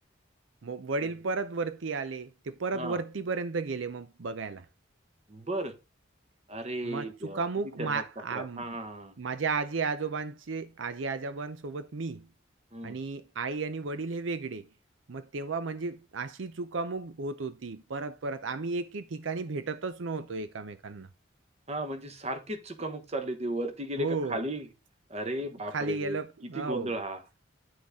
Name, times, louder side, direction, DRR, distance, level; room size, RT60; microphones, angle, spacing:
voice 1, 0.6-4.7 6.8-8.8 9.2-12.3 12.8-14.7 15.1-21.1 24.0-24.4 25.7-26.9, right 4 dB, 80° right, 0.6 m, -34 dB
voice 2, 5.3-5.8 6.5-7.4 7.8-9.2 12.7-13.0 21.7-24.7 25.1-26.2 26.5-27.2, right 1 dB, 35° right, 1.2 m, -35 dB
9.7 x 6.4 x 3.6 m
head